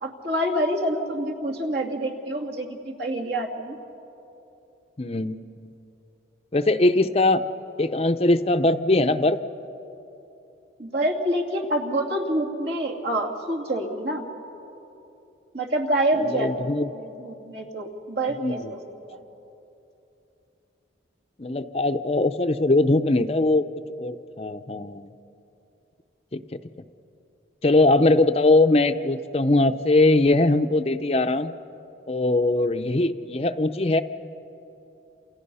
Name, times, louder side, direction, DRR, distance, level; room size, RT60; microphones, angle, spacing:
voice 1, 0.0-3.8 10.8-14.2 15.5-16.5 17.0-18.8, right 1 dB, 60° right, 0 dB, 2.7 m, -27 dB
voice 2, 5.0-5.7 6.5-7.4 7.8-9.4 16.2-16.9 18.4-18.7 21.4-23.6 24.0-25.1 26.3-26.4 27.6-31.5 32.1-34.0, left 2 dB, 30° left, 9 dB, 0.6 m, -21 dB
29.5 x 28.0 x 5.6 m, 2.9 s
head